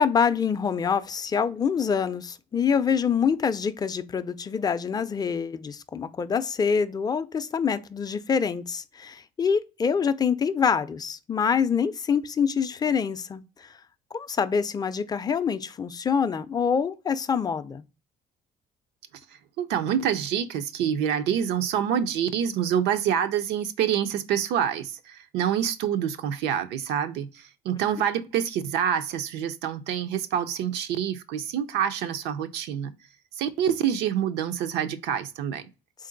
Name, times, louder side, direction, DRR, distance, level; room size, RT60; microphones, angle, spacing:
voice 1, 0.0-13.8 14.1-17.8, left 6 dB, 25° left, 0.4 m, -25 dB
voice 2, 19.6-32.9 33.4-35.6, right 9 dB, 85° right, 0.5 m, -27 dB
3.7 x 2.6 x 3.8 m
cardioid pair, 110°, 17 cm